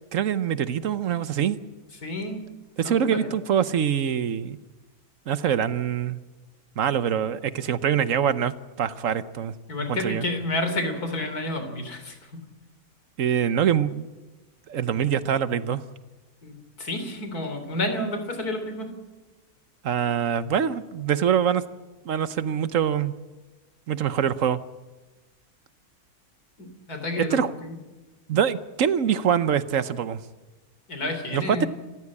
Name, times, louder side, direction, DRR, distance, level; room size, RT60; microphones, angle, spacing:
voice 1, 0.1-1.6 2.8-4.6 5.3-6.2 6.8-9.5 9.9-10.2 13.2-14.1 14.7-15.8 19.8-21.6 22.0-23.1 23.9-24.6 27.1-27.5 28.3-30.2 31.3-31.7, right 8 dB, 60° right, 14 dB, 1.2 m, -24 dB
voice 2, 2.0-2.5 2.8-3.3 9.7-12.4 16.4-18.9 26.6-27.7 30.9-31.7, left 1 dB, 75° left, 7 dB, 3.7 m, -30 dB
27.0 x 15.0 x 8.5 m, 1.2 s
omnidirectional pair, 1.6 m